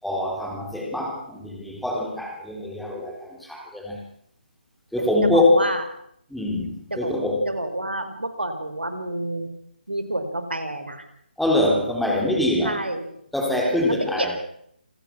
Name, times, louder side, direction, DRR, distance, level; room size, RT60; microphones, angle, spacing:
voice 1, 0.0-4.1 4.9-5.8 6.3-7.5 11.4-12.8 13.3-14.4, left 1 dB, ahead, 0 dB, 3.9 m, -24 dB
voice 2, 5.2-5.8 6.9-7.1 7.4-9.5 9.9-11.1 12.6-13.1 13.8-14.3, right 1 dB, 90° right, 8 dB, 4.7 m, -29 dB
27.5 x 16.0 x 6.2 m, 0.70 s
figure-of-eight pair, 150°, 5 cm